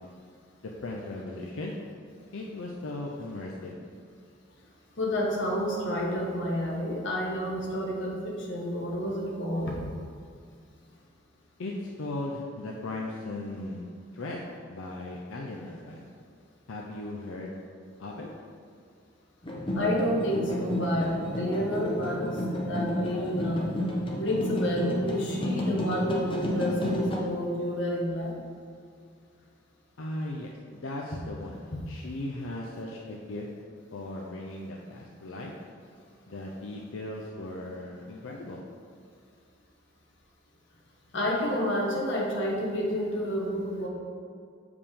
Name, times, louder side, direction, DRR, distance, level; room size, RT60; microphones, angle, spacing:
voice 1, 0.6-1.7 2.3-3.7 11.6-13.9 14.1-16.1 16.7-17.5 18.0-18.3 30.0-33.5 33.9-35.5 36.3-38.6, left 2 dB, 85° left, -2 dB, 0.6 m, -37 dB
voice 2, 5.0-9.7 19.7-21.1 21.3-22.3 22.7-23.6 24.2-28.3 41.1-43.9, equal, 65° left, -2 dB, 1.2 m, -29 dB
sound 1, 19.4-27.2, left 1 dB, 25° left, 0.8 m, -31 dB
6.8 x 4.9 x 3.7 m, 2.3 s
head